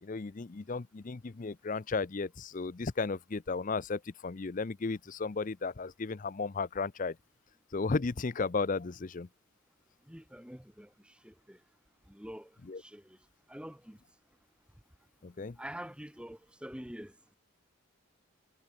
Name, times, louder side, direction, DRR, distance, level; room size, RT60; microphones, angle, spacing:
voice 1, 0.0-7.2 7.7-9.3 12.7-12.8 15.2-15.6, left 4 dB, 35° left, 0.5 m, -34 dB
voice 2, 10.1-11.6 12.1-12.5 12.8-13.2 13.5-14.0 15.6-17.1, equal, 5° right, 1.8 m, -46 dB
head